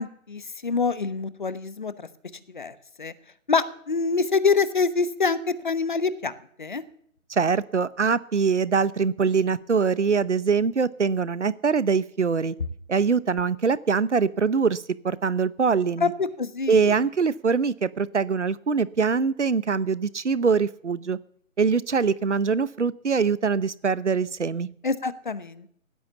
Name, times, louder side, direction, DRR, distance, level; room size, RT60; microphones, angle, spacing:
voice 1, 0.0-1.9 2.5-3.1 3.5-6.3 6.6-6.8 16.0-17.0 24.8-25.7, left 4 dB, 35° left, 15 dB, 1.0 m, -26 dB
voice 2, 7.3-12.5 12.9-16.1 16.7-21.2 21.6-24.7, right 5 dB, 60° right, 19 dB, 0.9 m, -23 dB
16.0 x 11.5 x 7.1 m, 0.67 s
figure-of-eight pair, 155°, 41 cm